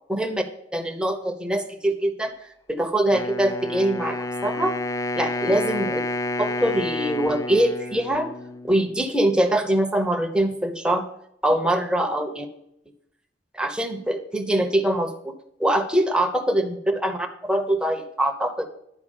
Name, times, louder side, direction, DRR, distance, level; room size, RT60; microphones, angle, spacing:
voice 1, 0.1-0.4 0.7-4.7 5.2-6.0 6.4-8.3 8.7-11.0 11.4-12.5 13.5-15.3 15.6-18.6, right 1 dB, 5° right, 4 dB, 1.0 m, -23 dB
Wind instrument woodwind instrument, 3.1-9.1, left 1 dB, 15° left, 0.3 m, -30 dB
11.0 x 4.8 x 6.4 m, 0.75 s
head